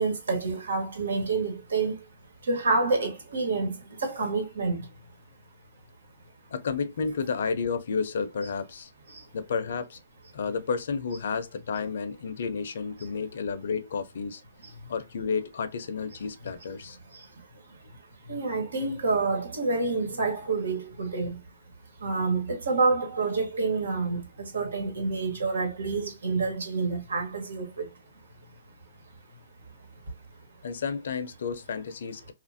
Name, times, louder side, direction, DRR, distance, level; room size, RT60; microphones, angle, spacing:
voice 1, 0.0-2.0 2.4-4.9 9.1-9.3 17.1-17.3 17.7-17.9 18.3-21.4 22.0-27.9, right 3 dB, 85° right, 1.4 m, -28 dB
voice 2, 6.5-8.9 9.3-10.0 10.3-14.4 14.9-17.0 30.6-32.3, left 5 dB, 60° left, 0.5 m, -31 dB
3.0 x 2.5 x 2.6 m
hypercardioid pair, 160°, 0 cm